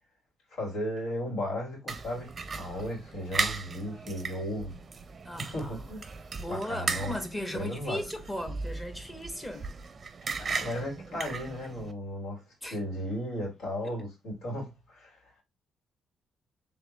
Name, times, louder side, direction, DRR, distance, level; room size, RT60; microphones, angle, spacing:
voice 1, 0.5-4.8 5.4-6.0 6.5-7.1 7.5-8.0 10.4-12.4 12.7-15.3, equal, 70° left, 3.0 m, -35 dB
sound 1, 1.9-11.9, right 4 dB, 35° right, 0.6 m, -37 dB
voice 2, 5.2-5.9 6.4-9.7 12.6-12.8 13.8-13.9, left 1 dB, 15° left, 1.3 m, -37 dB
3.5 x 3.5 x 3.3 m
cardioid pair, 90°, 0 cm